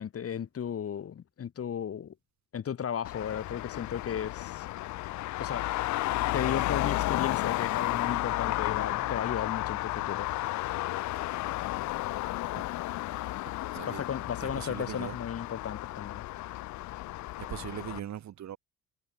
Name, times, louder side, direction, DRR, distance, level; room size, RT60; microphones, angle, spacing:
voice 1, 0.0-2.1 2.5-4.7 5.4-5.8 6.3-10.3 13.9-16.2, left 8 dB, 50° left, 1.9 m, -35 dB
Traffic noise roadway noise, 3.0-18.0, left 17 dB, 70° left, 0.5 m, -33 dB
voice 2, 13.7-14.1 14.4-15.2 17.4-18.6, right 11 dB, 65° right, 2.2 m, -40 dB
cardioid pair, 90°, 30 cm